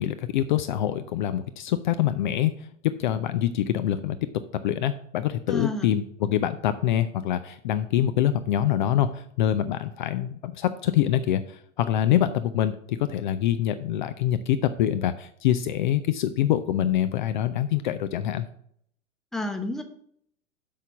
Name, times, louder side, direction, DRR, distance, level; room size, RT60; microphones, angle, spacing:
voice 1, 0.0-4.2 4.5-18.5, left 11 dB, 40° left, 11 dB, 0.5 m, -25 dB
voice 2, 5.5-5.9 19.3-19.8, left 2 dB, ahead, 8 dB, 0.7 m, -30 dB
8.0 x 5.6 x 6.1 m, 0.66 s
figure-of-eight pair, 100°, 39 cm